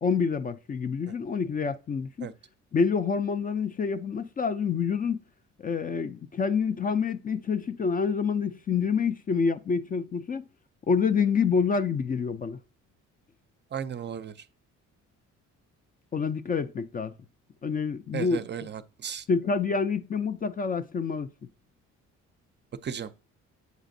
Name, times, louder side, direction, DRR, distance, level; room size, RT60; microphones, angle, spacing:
voice 1, 0.0-2.3 2.7-5.2 5.6-10.4 10.9-12.6 16.1-17.1 17.6-18.4 19.3-21.3, left 5 dB, 30° left, 0.4 m, -27 dB
voice 2, 13.7-14.3 18.1-19.2 22.8-23.1, right 8 dB, 35° right, 0.5 m, -35 dB
8.1 x 4.9 x 2.6 m
cardioid pair, 90°, 30 cm